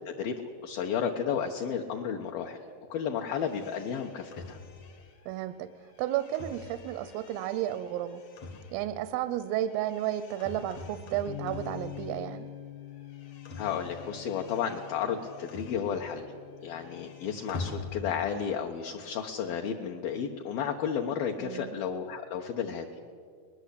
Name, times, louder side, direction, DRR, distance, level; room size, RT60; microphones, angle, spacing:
voice 1, 0.6-2.6 2.9-4.6 13.6-16.2 16.6-22.9, left 7 dB, 70° left, 2 dB, 2.3 m, -32 dB
sound 1, 3.3-12.6 12.8-16.3 16.6-18.5, left 3 dB, 55° left, 1.9 m, -45 dB
voice 2, 5.3-5.7 6.0-8.2 8.7-12.5 21.4-21.8, right 12 dB, 85° right, 12 dB, 3.4 m, -32 dB
Bass guitar, 11.3-17.5, left 13 dB, 90° left, 3.9 m, -45 dB
23.5 x 20.5 x 8.4 m, 2.1 s
omnidirectional pair, 5.7 m